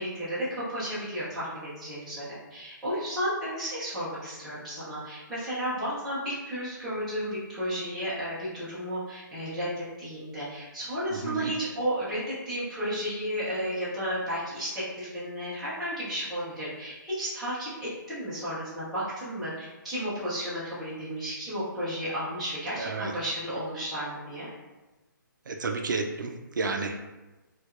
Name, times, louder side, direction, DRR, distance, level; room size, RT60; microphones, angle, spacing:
voice 1, 0.0-24.5, equal, ahead, -15 dB, 0.4 m, -33 dB
voice 2, 11.1-11.5 22.8-23.1 25.5-27.1, right 3 dB, 65° right, 3 dB, 0.4 m, -31 dB
4.4 x 2.2 x 2.3 m, 1.1 s
hypercardioid pair, 180°, 11 cm